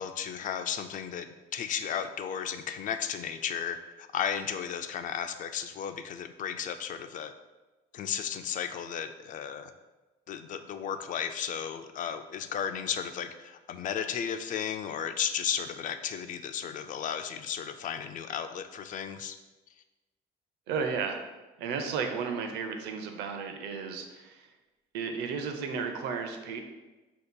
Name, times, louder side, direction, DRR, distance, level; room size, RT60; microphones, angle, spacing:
voice 1, 0.0-7.3 7.9-9.7 10.3-19.4, left 8 dB, 50° left, 8 dB, 0.4 m, -34 dB
voice 2, 20.7-21.2 21.6-24.5 24.9-26.6, right 5 dB, 90° right, 6 dB, 0.6 m, -33 dB
7.7 x 2.9 x 2.2 m, 1.1 s
cardioid pair, 110°, 17 cm